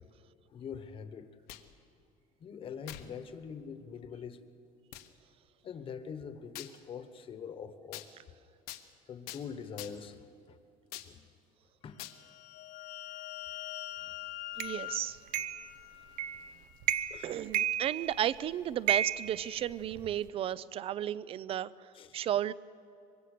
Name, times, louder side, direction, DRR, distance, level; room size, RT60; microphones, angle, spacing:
voice 1, 0.5-1.3 2.4-4.4 5.6-8.1 9.1-10.6 10.9-11.2 11.8-12.0 17.1-17.4 21.9-22.2, left 6 dB, 35° left, 10 dB, 1.3 m, -44 dB
sound 1, 1.3-1.8 2.9-3.1 3.8-3.9 4.9-5.1 6.6-6.8 7.9-8.1 8.7-8.9 9.3-9.4 9.8-10.1 10.9-11.1 12.0-12.2, left 14 dB, 80° left, 1.3 m, -44 dB
sound 2, 12.0-16.5, left 16 dB, 60° left, 0.8 m, -44 dB
voice 2, 14.6-15.2 17.2-22.5, right 11 dB, 40° right, 19 dB, 0.5 m, -34 dB
sound 3, 14.6-14.7 15.3-15.7 16.2-16.5 16.8-17.2 17.5-18.4 18.9-20.1, right 10 dB, 65° right, 0.8 m, -32 dB
24.0 x 22.5 x 6.7 m, 2.6 s
cardioid pair, 165°, 16 cm